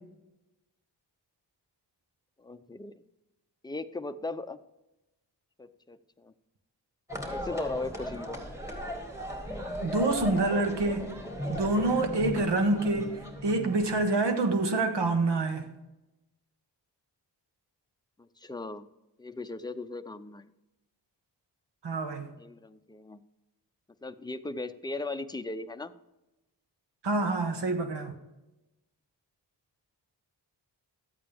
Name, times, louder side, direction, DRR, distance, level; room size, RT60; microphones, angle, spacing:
voice 1, 2.4-2.9 3.6-4.6 5.6-6.3 7.3-8.4 18.4-18.8 19.2-20.5 22.4-23.2 24.0-25.9, left 2 dB, 10° left, 0.6 m, -38 dB
sound 1, 7.1-14.2, equal, 5° right, 2.3 m, -37 dB
voice 2, 9.8-11.1 11.5-15.6 21.8-22.3 27.0-28.1, right 2 dB, 75° right, 1.3 m, -27 dB
13.0 x 8.6 x 3.6 m
cardioid pair, 60°, 42 cm